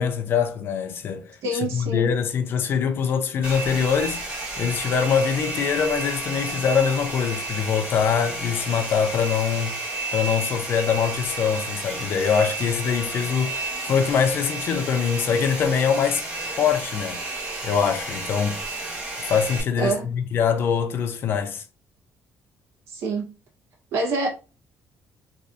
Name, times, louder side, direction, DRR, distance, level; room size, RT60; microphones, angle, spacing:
voice 1, 0.0-9.7 10.1-17.2 17.6-18.6 19.2-21.6, left 7 dB, 50° left, 0.4 m, -23 dB
voice 2, 1.4-2.1 19.8-20.0 22.9-23.3 23.9-24.3, right 2 dB, 70° right, 1.2 m, -26 dB
Domestic sounds home sounds, 3.4-19.6, right 2 dB, 25° right, 1.5 m, -32 dB
3.2 x 2.6 x 2.6 m
cardioid pair, 145°, 5 cm